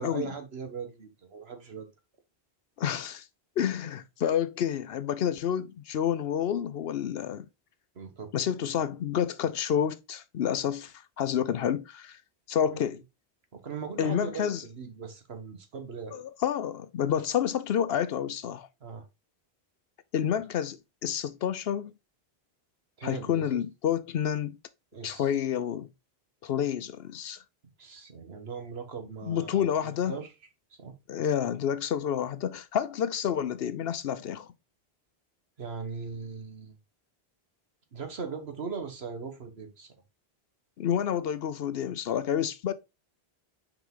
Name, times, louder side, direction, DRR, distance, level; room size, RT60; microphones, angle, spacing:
voice 1, 0.0-1.9 7.9-8.3 8.6-8.8 12.7-12.8 13.5-16.2 18.8-19.1 23.0-23.6 24.9-25.4 27.6-30.3 30.8-30.9 35.6-36.8 37.9-39.9, right 5 dB, 75° right, 1.5 m, -39 dB
voice 2, 2.8-3.2 3.6-7.5 8.3-12.2 12.5-13.0 14.0-14.6 16.1-18.7 20.1-21.9 23.0-24.6 25.0-25.9 26.4-27.4 29.2-30.2 31.1-34.5 40.8-42.7, left 9 dB, 70° left, 0.8 m, -29 dB
5.9 x 4.9 x 3.7 m
omnidirectional pair, 1.1 m